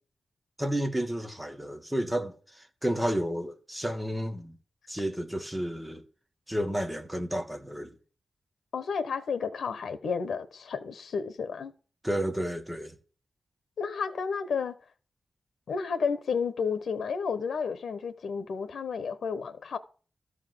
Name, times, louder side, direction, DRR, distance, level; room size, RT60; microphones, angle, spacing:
voice 1, 0.6-4.6 4.9-6.0 6.5-7.9 12.0-12.9, right 1 dB, 5° right, 1.6 m, -31 dB
voice 2, 8.7-11.7 13.8-14.7 15.7-19.8, left 5 dB, 90° left, 1.1 m, -31 dB
13.5 x 4.8 x 7.7 m
wide cardioid pair, 150°, 0 cm